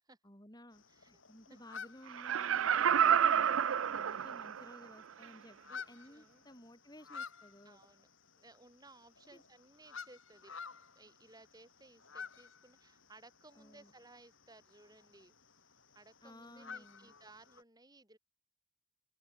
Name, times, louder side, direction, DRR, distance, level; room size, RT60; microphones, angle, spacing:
voice 1, 0.2-7.8 9.3-9.4 13.5-13.9 16.2-17.1, left 1 dB, 20° left, 8.0 m, -56 dB
sound 1, 0.7-17.6, left 5 dB, 70° left, 7.5 m, -53 dB
voice 2, 0.9-1.2 1.5-1.6 6.0-6.4 7.6-8.1 8.4-10.5 11.0-15.3 16.0-18.2, right 2 dB, 20° right, 7.2 m, -60 dB
Laughter, 2.1-4.8 5.2-5.3, right 8 dB, 75° right, 0.5 m, -29 dB
head